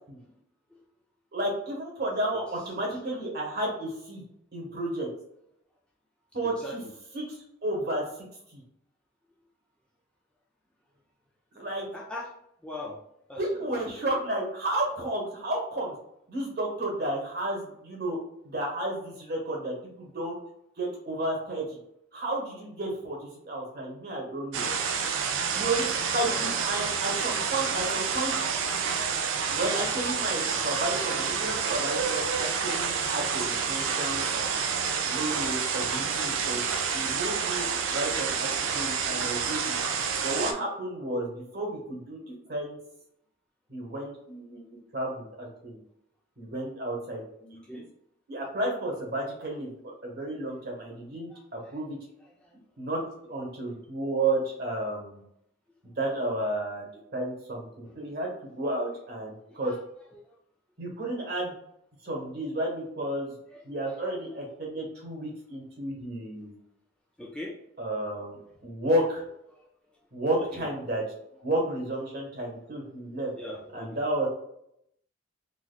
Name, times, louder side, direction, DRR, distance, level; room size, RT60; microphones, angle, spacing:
voice 1, 1.3-4.2 4.5-5.1 6.3-6.8 7.1-7.4 7.6-8.0 8.5-8.6 11.5-11.9 13.4-15.9 16.3-18.2 18.4-20.3 20.8-21.8 22.1-23.2 23.4-24.7 25.5-28.3 29.5-34.5 35.0-36.6 36.9-39.7 40.2-42.8 43.7-45.8 46.4-47.6 48.3-52.0 52.8-53.0 53.3-55.2 56.0-56.8 57.1-59.7 60.8-61.5 62.0-63.3 63.6-66.5 67.8-69.2 70.1-71.0 71.4-73.3 73.7-74.3, right 1 dB, 50° right, -1 dB, 1.2 m, -32 dB
voice 2, 6.4-6.9 11.9-12.3 12.6-13.0 13.3-13.8 47.7-47.9 51.3-51.8 52.4-52.6 57.8-58.2 59.5-59.8 60.1-60.4 63.5-64.5 67.2-67.6 69.5-69.7 70.3-70.7 73.3-74.0, left 1 dB, 5° left, -3 dB, 0.4 m, -42 dB
sound 1, 24.5-40.5, right 6 dB, 70° right, 0.5 m, -29 dB
3.9 x 3.0 x 2.2 m, 0.75 s
head